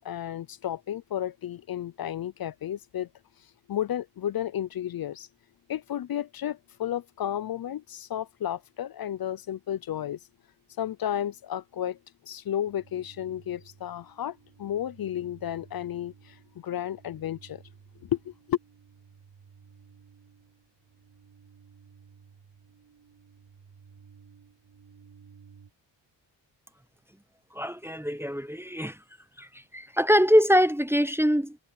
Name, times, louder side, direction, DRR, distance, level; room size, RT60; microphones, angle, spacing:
voice 1, 0.0-3.1 3.7-5.3 5.7-10.2 10.8-12.0 12.3-17.6 18.0-18.6, left 11 dB, 50° left, 0.6 m, -32 dB
sound 1, 12.6-25.7, right 6 dB, 60° right, 4.9 m, -55 dB
voice 2, 27.5-29.0 29.4-31.6, equal, 5° right, 0.7 m, -23 dB
cardioid pair, 70°, 45 cm